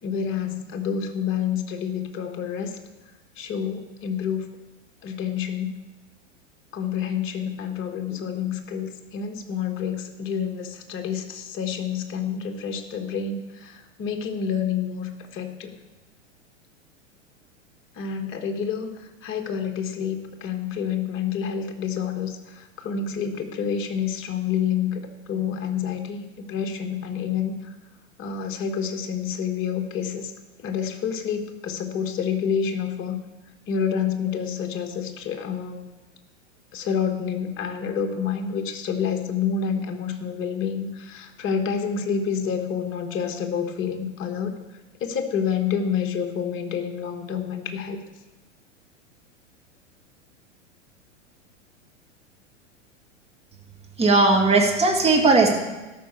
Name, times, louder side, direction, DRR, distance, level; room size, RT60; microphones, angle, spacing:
voice 1, 0.0-2.8 3.4-4.5 5.0-5.8 6.7-15.7 18.0-18.9 19.2-27.7 28.2-30.3 30.6-33.2 33.7-35.9 36.7-44.6 45.0-48.0, left 7 dB, 35° left, 5 dB, 1.5 m, -28 dB
voice 2, 54.0-55.5, right 3 dB, 15° right, 1 dB, 2.0 m, -17 dB
13.0 x 6.0 x 6.8 m, 1.1 s
hypercardioid pair, 100°, 37 cm